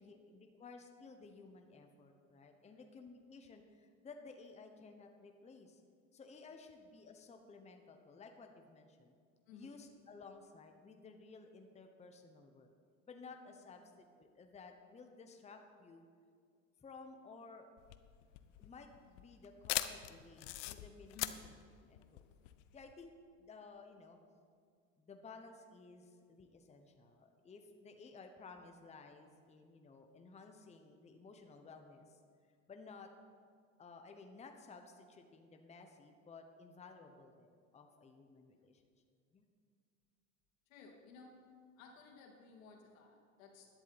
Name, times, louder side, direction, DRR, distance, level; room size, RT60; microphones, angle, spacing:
voice 1, 0.0-5.8 6.1-9.1 9.5-12.7 13.1-16.0 16.8-17.7 18.6-21.2 21.8-22.3 22.7-23.1 23.4-24.2 25.0-32.2 32.7-33.1 33.8-38.8 39.3-39.5, left 4 dB, 15° left, 5 dB, 0.9 m, -56 dB
voice 2, 9.5-9.8 13.6-13.8 21.1-21.5 40.7-41.4 41.8-43.7, left 4 dB, 85° left, 1 dB, 2.5 m, -57 dB
sound 1, 17.8-22.9, left 16 dB, 65° left, 0.8 m, -42 dB
13.5 x 11.0 x 4.2 m, 2.2 s
supercardioid pair, 110°, 40 cm